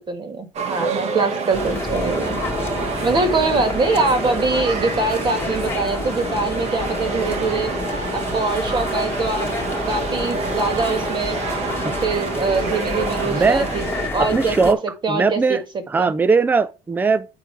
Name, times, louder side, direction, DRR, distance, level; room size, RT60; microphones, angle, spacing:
voice 1, 0.1-2.4 3.0-7.7 8.1-9.5 9.9-11.4 12.0-13.8 14.1-14.7 15.0-16.1, right 3 dB, 30° right, 1.8 m, -23 dB
sound 1, 0.5-14.1, right 5 dB, 50° right, 1.3 m, -28 dB
sound 2, 1.5-14.7, left 3 dB, 15° left, 1.5 m, -29 dB
voice 2, 13.3-13.7 14.2-14.8 15.1-15.6 15.9-17.3, right 4 dB, 15° right, 0.4 m, -19 dB
8.5 x 4.7 x 4.6 m
cardioid pair, 135°, 14 cm